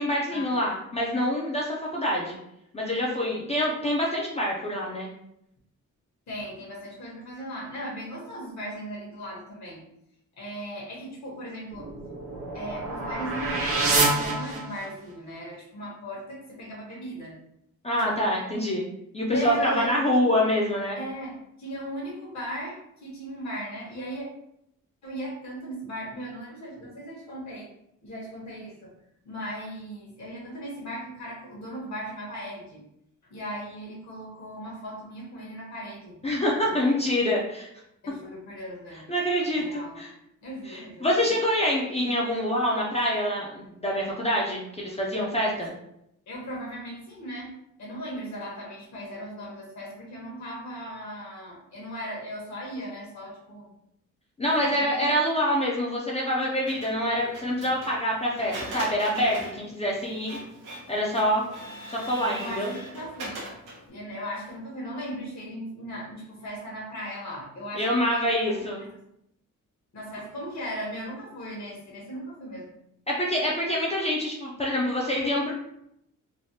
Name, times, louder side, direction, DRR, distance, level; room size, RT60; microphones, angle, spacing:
voice 1, 0.0-2.4 2.7-5.1 17.8-18.8 19.1-21.0 36.2-37.7 39.1-40.1 40.7-45.7 54.4-60.4 60.9-61.4 62.1-62.7 67.8-68.8 73.1-75.5, equal, 20° left, -4 dB, 0.3 m, -26 dB
voice 2, 6.3-9.8 10.4-11.9 12.5-17.4 18.0-18.2 19.3-20.5 20.9-24.2 25.0-27.7 28.0-28.9 29.2-32.8 33.3-36.2 36.6-36.9 38.0-39.1 39.5-40.0 40.4-41.4 45.4-45.6 46.3-53.7 54.6-55.1 62.3-63.4 63.9-68.9 69.9-72.7, equal, 60° left, -4 dB, 1.0 m, -37 dB
sound 1, 11.7-15.1, right 3 dB, 45° right, 0.6 m, -27 dB
Printer, 56.7-63.9, right 1 dB, 80° right, 0.9 m, -40 dB
3.2 x 2.1 x 2.7 m, 0.79 s
wide cardioid pair, 175°, 32 cm